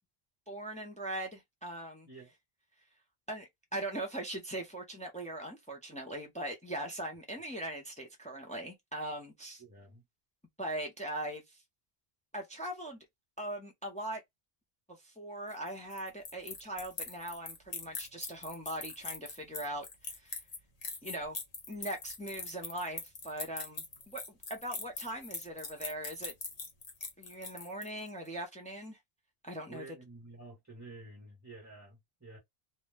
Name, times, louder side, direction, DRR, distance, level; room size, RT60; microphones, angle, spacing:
voice 1, 0.5-2.1 3.3-9.6 10.6-11.4 12.3-13.1 13.4-14.2 15.0-20.3 21.0-21.4 21.7-24.2 24.5-26.3 27.2-29.0 29.4-29.8, right 1 dB, 10° left, 0.4 m, -40 dB
voice 2, 9.6-10.0 29.7-32.4, right 3 dB, 20° right, 0.8 m, -50 dB
sound 1, 15.5-28.1, left 4 dB, 45° left, 0.8 m, -42 dB
2.5 x 2.2 x 3.2 m
omnidirectional pair, 1.0 m